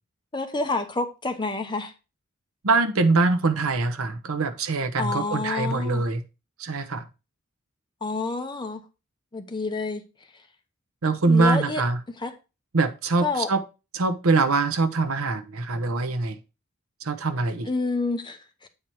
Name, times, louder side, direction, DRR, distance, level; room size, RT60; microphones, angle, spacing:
voice 1, 0.3-1.9 5.0-6.0 8.0-8.8 9.3-10.0 11.2-11.8 12.2-12.3 13.2-13.5 17.7-18.7, left 3 dB, 20° left, 0.8 m, -28 dB
voice 2, 2.6-6.2 6.6-7.0 11.0-12.0 12.7-13.6 13.9-16.4 17.0-17.7, right 3 dB, 70° right, 0.8 m, -23 dB
8.4 x 4.4 x 4.6 m
head